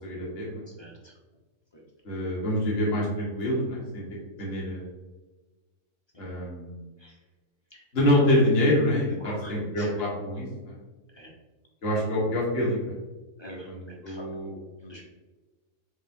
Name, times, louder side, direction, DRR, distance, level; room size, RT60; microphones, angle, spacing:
voice 1, 0.0-0.6 2.0-4.0 4.4-4.9 6.2-6.8 7.9-10.7 11.8-12.9 13.7-14.5, left 1 dB, 50° left, -4 dB, 1.4 m, -26 dB
voice 2, 0.7-1.1 1.7-1.8 7.0-7.2 7.7-7.8 9.2-9.9 11.1-11.3 13.4-15.0, equal, 25° left, -2 dB, 0.6 m, -45 dB
6.6 x 2.5 x 2.6 m, 1.2 s
omnidirectional pair, 1.4 m